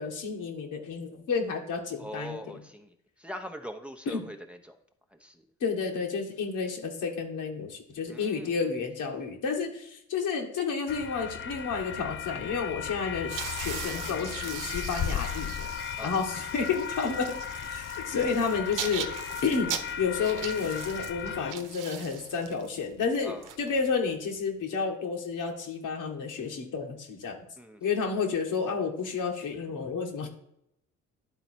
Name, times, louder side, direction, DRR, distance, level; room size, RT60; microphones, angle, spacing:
voice 1, 0.0-2.6 4.1-4.2 5.6-15.7 16.0-17.4 17.7-19.1 19.4-19.7 20.0-27.4 27.8-30.3, left 5 dB, 70° left, 2 dB, 1.8 m, -31 dB
voice 2, 2.0-2.9 3.2-4.8 5.1-5.4 8.1-8.6 16.0-16.1 23.2-23.5 27.6-27.8, equal, 5° right, 4 dB, 0.9 m, -42 dB
sound 1, 10.9-21.5, left 8 dB, 40° left, 0.5 m, -36 dB
sound 2, 13.2-24.2, right 8 dB, 70° right, 0.9 m, -40 dB
10.5 x 3.9 x 4.5 m, 0.77 s
supercardioid pair, 65°, 32 cm